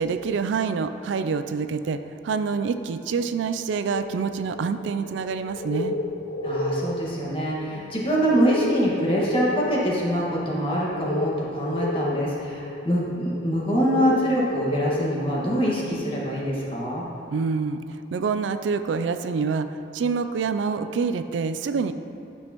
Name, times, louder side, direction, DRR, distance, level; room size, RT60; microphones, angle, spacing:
voice 1, 0.0-6.0 17.3-21.9, right 5 dB, 80° right, 10 dB, 0.4 m, -26 dB
sound 1, 3.9-17.1, left 1 dB, 60° left, 0.4 m, -32 dB
voice 2, 6.4-17.0, equal, 30° left, -5 dB, 1.6 m, -24 dB
11.5 x 6.2 x 2.9 m, 2.7 s
head